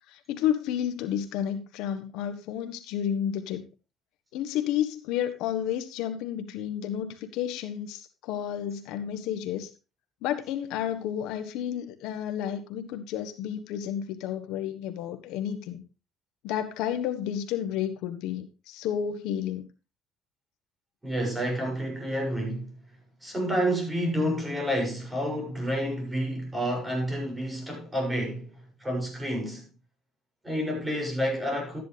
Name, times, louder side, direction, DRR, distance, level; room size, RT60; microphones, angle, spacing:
voice 1, 0.1-3.7 4.3-9.7 10.2-15.8 16.4-19.7, left 10 dB, 80° left, 1.3 m, -31 dB
voice 2, 21.0-22.7 23.2-28.5 28.8-29.7 30.4-31.8, equal, 15° right, 6.9 m, -29 dB
12.5 x 10.0 x 3.4 m
cardioid pair, 105°, 0 cm